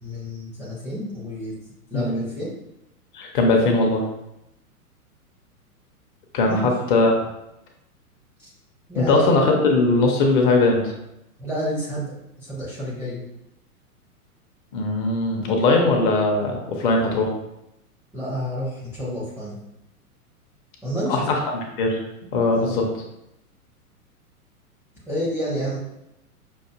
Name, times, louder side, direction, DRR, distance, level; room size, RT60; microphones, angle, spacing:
voice 1, 0.0-1.6 1.9-2.5 6.5-6.7 8.4-8.5 8.9-9.3 11.4-12.1 12.4-13.3 18.1-19.6 20.8-21.4 22.5-22.8 25.1-25.8, equal, 5° right, -8 dB, 0.5 m, -29 dB
voice 2, 3.1-4.0 6.3-7.1 9.0-10.9 14.7-17.3 21.1-22.0 22.3-22.8, left 2 dB, 35° left, 2 dB, 0.7 m, -20 dB
5.6 x 2.4 x 2.4 m, 0.85 s
figure-of-eight pair, 105°, 45 cm